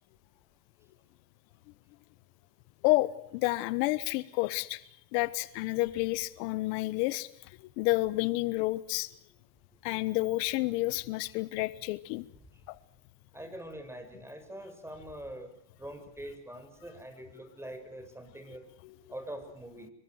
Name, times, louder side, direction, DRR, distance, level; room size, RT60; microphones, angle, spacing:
voice 1, 2.8-4.8 5.1-7.3 7.8-9.1 9.8-12.3 12.7-12.8 18.8-18.9, left 20 dB, 80° left, 16 dB, 1.4 m, -30 dB
voice 2, 13.3-15.5 15.8-18.6 19.1-19.9, right 1 dB, 5° right, 8 dB, 6.7 m, -44 dB
26.5 x 23.5 x 8.0 m, 0.67 s
supercardioid pair, 95°, 49 cm